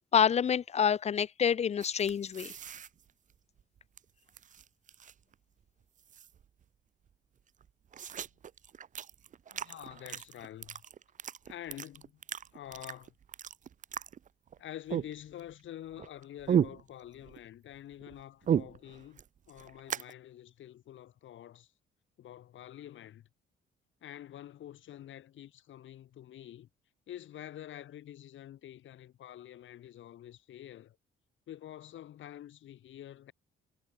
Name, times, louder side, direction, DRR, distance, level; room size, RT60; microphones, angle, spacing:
voice 1, 0.1-2.5, left 7 dB, 35° left, 0.4 m, -27 dB
sound 1, 1.8-4.0 4.3-5.3 5.6-5.7 6.0-6.6 7.1-7.2 7.4-14.6 14.9-15.6 15.9-17.4 17.7-20.1, right 8 dB, 40° right, 0.5 m, -36 dB
voice 2, 9.5-10.8 11.5-12.2 12.5-13.1 14.6-21.7 22.2-23.3 24.0-26.7 27.1-31.0 31.5-33.3, left 12 dB, 75° left, 7.5 m, -47 dB
cardioid pair, 90°, 20 cm